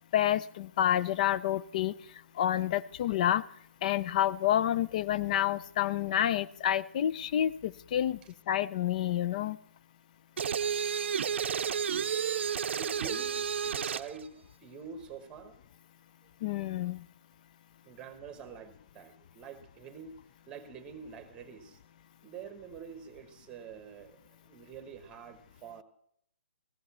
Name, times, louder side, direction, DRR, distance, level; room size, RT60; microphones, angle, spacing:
voice 1, 0.1-1.9 2.4-3.4 3.8-8.2 8.5-9.6 16.4-17.0, left 11 dB, 35° left, 17 dB, 0.4 m, -28 dB
sound 1, 10.4-14.1, right 7 dB, 60° right, 0.6 m, -31 dB
voice 2, 12.7-14.3 14.6-15.6 17.8-20.1 20.5-21.8 22.2-25.8, right 6 dB, 15° right, 10 dB, 1.2 m, -46 dB
15.5 x 12.5 x 4.2 m, 0.71 s
hypercardioid pair, 155°, 7 cm